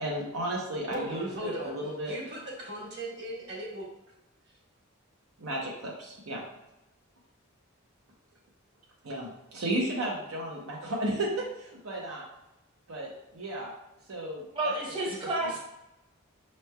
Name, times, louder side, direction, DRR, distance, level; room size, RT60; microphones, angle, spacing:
voice 1, 0.0-2.2 5.4-6.4 9.0-12.2 12.9-13.7 14.1-14.7 15.1-15.5, right 1 dB, 75° right, -3 dB, 0.7 m, -34 dB
voice 2, 0.9-3.9, right 1 dB, 55° right, -3 dB, 1.3 m, -38 dB
voice 3, 14.5-15.6, right 2 dB, 25° right, -5 dB, 0.8 m, -30 dB
5.4 x 3.1 x 2.2 m, 0.91 s
head